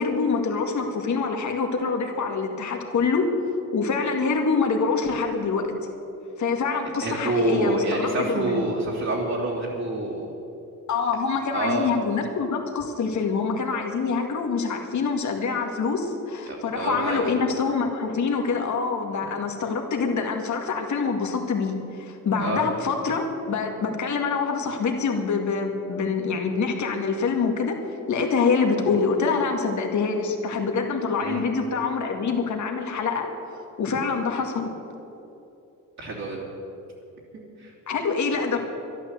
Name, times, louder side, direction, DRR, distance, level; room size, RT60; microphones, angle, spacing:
voice 1, 0.0-3.3 3.7-5.7 6.4-8.6 10.9-27.7 28.1-33.3 33.8-34.7 37.9-38.6, left 5 dB, 55° left, 3 dB, 2.0 m, -25 dB
voice 2, 7.0-10.3 11.5-11.9 16.5-17.3 22.4-22.7 31.2-31.4 36.0-36.5 37.6-37.7, right 2 dB, 50° right, -5 dB, 3.2 m, -27 dB
12.0 x 12.0 x 7.7 m, 2.9 s
cardioid pair, 115°, 35 cm